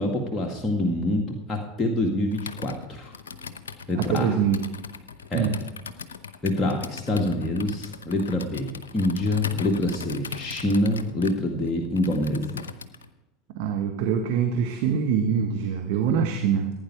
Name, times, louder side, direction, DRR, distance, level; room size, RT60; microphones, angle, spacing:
voice 1, 0.0-3.1 3.9-4.3 5.3-5.5 6.4-12.6, left 1 dB, 20° left, 0 dB, 2.0 m, -26 dB
Computer keyboard, 2.3-13.1, left 5 dB, 75° left, 0.8 m, -39 dB
voice 2, 3.9-4.6 5.3-5.6 13.5-16.7, right 7 dB, 60° right, 4 dB, 1.3 m, -24 dB
16.0 x 9.6 x 4.7 m, 1.0 s
figure-of-eight pair, 80°, 0 cm